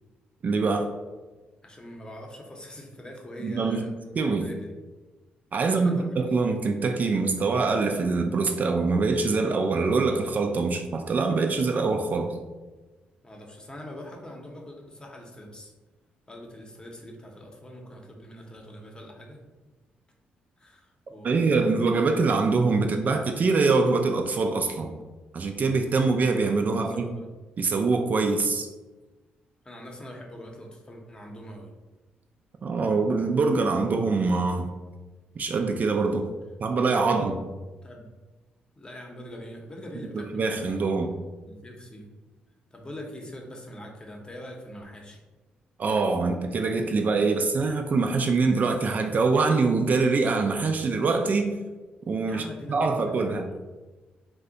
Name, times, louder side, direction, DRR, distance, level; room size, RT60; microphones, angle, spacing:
voice 1, 0.4-0.9 3.4-4.4 5.5-12.4 21.2-24.9 25.3-27.1 27.6-28.7 32.6-34.7 35.4-36.3 36.6-37.5 40.1-41.1 45.8-51.5 52.1-52.4 52.7-53.4, right 4 dB, 50° right, 4 dB, 0.3 m, -24 dB
voice 2, 1.6-3.9 4.4-4.7 5.6-6.1 13.2-15.7 16.3-19.4 20.6-21.8 26.7-27.3 29.6-31.7 37.8-38.1 38.8-40.9 41.4-42.1 42.7-45.2 52.3-53.3, left 1 dB, 25° left, 0 dB, 0.7 m, -43 dB
2.6 x 2.1 x 3.8 m, 1.2 s
supercardioid pair, 65°, 4 cm